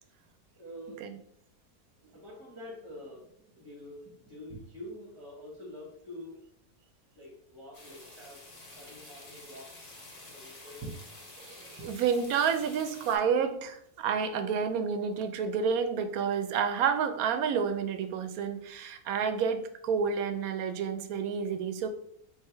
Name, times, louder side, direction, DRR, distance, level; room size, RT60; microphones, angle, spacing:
voice 1, 0.5-1.1 2.1-6.4 7.2-8.5 8.8-11.3 11.8-11.9 14.4-14.5, equal, 20° right, -4 dB, 1.0 m, -46 dB
sound 1, 7.7-13.2, left 2 dB, 30° left, 0.6 m, -49 dB
voice 2, 11.4-21.9, right 6 dB, 75° right, 8 dB, 1.0 m, -29 dB
3.4 x 3.1 x 4.4 m, 0.70 s
omnidirectional pair, 1.6 m